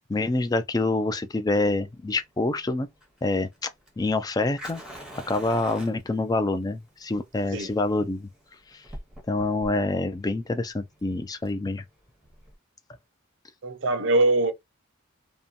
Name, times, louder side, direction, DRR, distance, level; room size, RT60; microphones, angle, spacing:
voice 1, 0.1-2.9 3.2-3.7 4.0-4.8 5.3-8.3 8.7-8.8 9.3-11.8, left 2 dB, 20° left, 0.3 m, -26 dB
Fire, 1.5-12.5, equal, 5° right, 0.8 m, -46 dB
voice 2, 13.6-14.5, right 2 dB, 60° right, 0.5 m, -22 dB
2.7 x 2.2 x 2.4 m
head